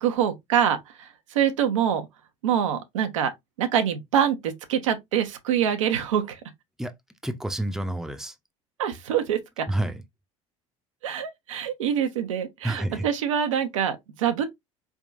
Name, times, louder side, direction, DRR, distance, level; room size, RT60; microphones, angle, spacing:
voice 1, 0.0-2.1 2.4-3.3 3.6-6.4 8.8-9.7 11.0-14.4, right 9 dB, 75° right, 0.8 m, -25 dB
voice 2, 7.2-8.3 9.7-10.0 12.6-13.1, right 1 dB, 5° right, 0.8 m, -29 dB
4.4 x 3.6 x 2.6 m
hypercardioid pair, 65°, 17 cm